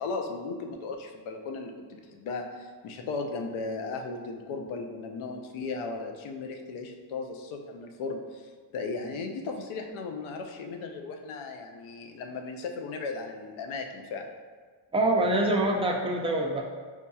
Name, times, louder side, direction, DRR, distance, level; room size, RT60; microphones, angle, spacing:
voice 1, 0.0-14.3, left 3 dB, 75° left, 4 dB, 0.6 m, -36 dB
voice 2, 14.9-16.6, right 1 dB, 15° right, 0 dB, 0.3 m, -25 dB
4.4 x 2.7 x 2.3 m, 1.5 s
cardioid pair, 90°, 50 cm